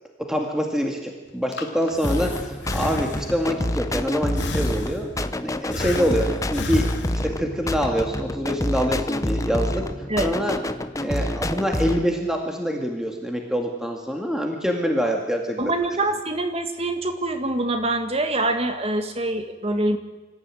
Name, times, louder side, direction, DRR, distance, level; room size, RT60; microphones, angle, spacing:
voice 1, 0.3-5.1 5.4-9.8 10.2-10.6 11.0-15.7, equal, 5° right, 2 dB, 2.2 m, -25 dB
Breathing, 1.3-3.6 4.4-5.3 5.7-7.5, left 2 dB, 65° left, 2.7 m, -32 dB
sound 1, 2.0-12.0, left 1 dB, 15° left, 0.8 m, -27 dB
voice 2, 15.6-20.0, right 2 dB, 30° right, 7 dB, 1.9 m, -25 dB
25.5 x 14.5 x 9.1 m, 1.2 s
head